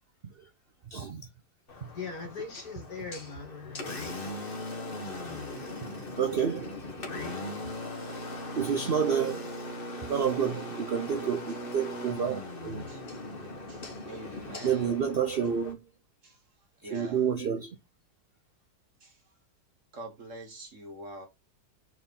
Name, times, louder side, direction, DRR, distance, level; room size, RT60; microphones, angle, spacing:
voice 1, 0.9-1.2 6.2-6.7 8.6-9.4 10.1-12.8 14.6-15.8 16.9-17.7, right 7 dB, 65° right, 0.5 m, -29 dB
Engine, 1.7-15.7, left 1 dB, 30° left, 1.5 m, -39 dB
voice 2, 1.9-3.9, left 4 dB, 55° left, 2.4 m, -40 dB
voice 3, 13.7-15.0 16.2-16.4 16.8-17.4 19.0-19.2 19.9-21.3, right 1 dB, 45° right, 1.8 m, -45 dB
4.6 x 4.5 x 5.3 m
omnidirectional pair, 1.9 m